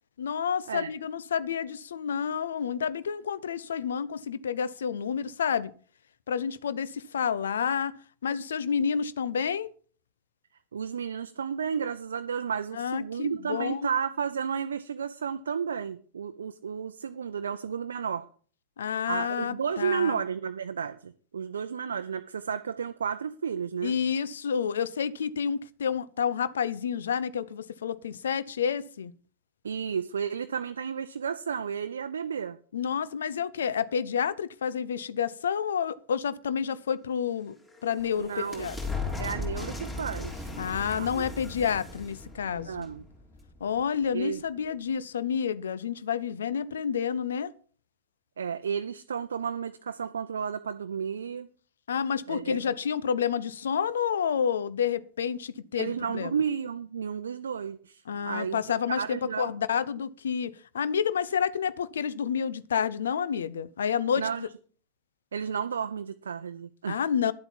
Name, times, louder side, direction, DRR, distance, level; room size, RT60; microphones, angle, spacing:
voice 1, 0.2-5.7 6.3-7.9 8.2-9.7 12.7-13.9 18.8-20.2 23.8-29.1 32.7-37.6 37.8-38.8 40.6-42.9 43.6-47.5 51.9-56.3 58.1-64.3 66.9-67.3, left 7 dB, 65° left, 0.6 m, -29 dB
voice 2, 10.7-18.3 19.1-23.9 29.6-32.6 38.2-38.7 39.2-40.5 41.0-41.3 42.5-43.0 44.1-44.4 48.4-51.5 52.3-52.6 55.8-58.6 59.0-59.5 64.2-64.5 65.3-67.0, right 7 dB, 70° right, 0.6 m, -32 dB
sound 1, 37.4-43.8, left 3 dB, 15° left, 3.8 m, -37 dB
11.0 x 8.0 x 5.7 m
figure-of-eight pair, 90°, 0 cm